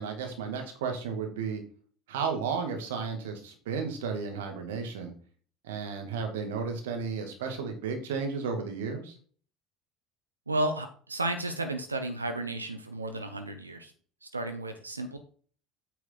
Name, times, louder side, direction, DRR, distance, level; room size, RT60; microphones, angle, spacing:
voice 1, 0.0-1.6 2.1-5.1 5.6-9.1, right 5 dB, 65° right, 4 dB, 2.5 m, -33 dB
voice 2, 10.5-13.9 14.2-15.2, right 2 dB, 85° right, 7 dB, 1.0 m, -33 dB
9.2 x 7.5 x 4.0 m, 0.43 s
figure-of-eight pair, 65°, 0 cm